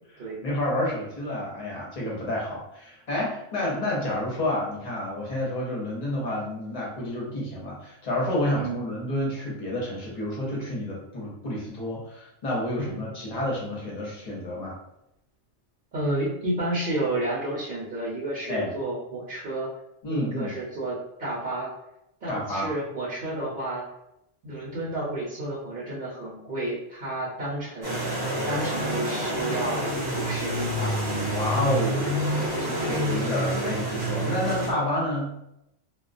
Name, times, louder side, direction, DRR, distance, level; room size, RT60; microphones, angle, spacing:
voice 1, 0.1-14.8 18.5-18.7 20.0-20.5 22.3-22.7 31.3-35.3, left 1 dB, 45° left, -4 dB, 0.8 m, -30 dB
voice 2, 15.9-19.7 20.1-21.7 22.2-23.8 24.4-28.0 28.4-31.0 32.8-33.2, right 1 dB, 55° right, -6 dB, 0.9 m, -31 dB
sound 1, 27.8-34.7, right 1 dB, 30° right, 0.5 m, -28 dB
2.3 x 2.2 x 2.5 m, 0.83 s
omnidirectional pair, 1.1 m